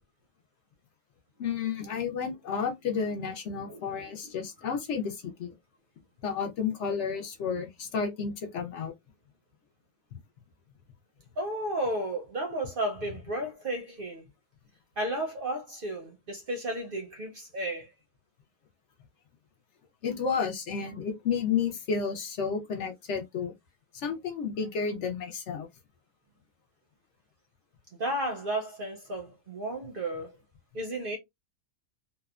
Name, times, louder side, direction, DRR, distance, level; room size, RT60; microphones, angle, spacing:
voice 1, 1.4-5.5 6.2-8.9 10.1-10.2 20.0-23.5 23.9-25.7, left 6 dB, 65° left, 0.9 m, -31 dB
voice 2, 3.7-4.3 11.4-14.2 15.0-17.9 28.0-30.4 30.7-31.2, right 1 dB, 55° right, 0.6 m, -33 dB
2.8 x 2.1 x 2.3 m
omnidirectional pair, 1.4 m